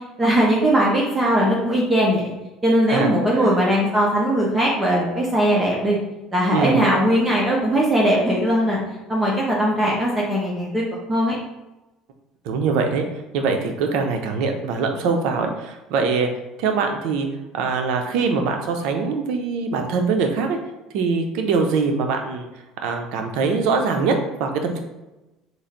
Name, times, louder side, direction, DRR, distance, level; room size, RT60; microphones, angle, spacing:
voice 1, 0.2-2.3 2.6-6.0 6.3-8.8 9.1-10.8 11.1-11.3, right 1 dB, 20° right, -4 dB, 0.7 m, -19 dB
voice 2, 2.9-3.6 6.5-6.8 12.4-13.0 13.3-16.3 16.6-17.3 17.5-20.6 20.9-22.5 22.8-24.1 24.4-24.8, right 4 dB, 75° right, 4 dB, 0.6 m, -23 dB
3.1 x 2.5 x 3.9 m, 1.0 s
supercardioid pair, 115°, 0 cm